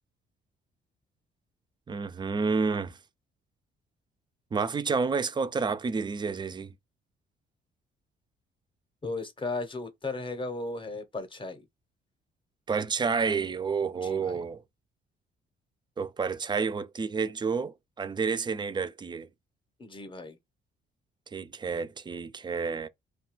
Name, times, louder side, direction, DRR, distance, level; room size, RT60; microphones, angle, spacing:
voice 1, 1.9-3.0 4.5-6.7 12.7-14.6 16.0-19.3 21.3-22.9, right 5 dB, 25° right, 0.3 m, -30 dB
voice 2, 9.0-11.6 14.0-14.4 19.8-20.4, left 3 dB, 25° left, 0.7 m, -36 dB
2.7 x 2.2 x 2.9 m
cardioid pair, 90°, 20 cm